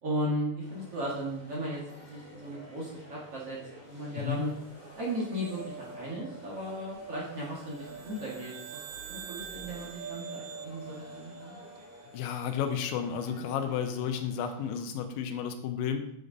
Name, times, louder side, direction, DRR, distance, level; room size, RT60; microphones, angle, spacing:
voice 1, 0.0-3.6 3.9-4.5 5.0-8.8 9.1-11.5, equal, 45° right, -5 dB, 2.0 m, -36 dB
sound 1, 0.6-14.8, equal, 10° left, 1.0 m, -52 dB
sound 2, 4.5-13.3, right 4 dB, 65° right, 1.4 m, -48 dB
sound 3, 7.7-12.2, right 10 dB, 80° right, 2.3 m, -47 dB
voice 2, 12.1-16.0, left 8 dB, 85° left, 7 dB, 3.1 m, -32 dB
8.4 x 6.5 x 5.3 m, 0.77 s
omnidirectional pair, 5.2 m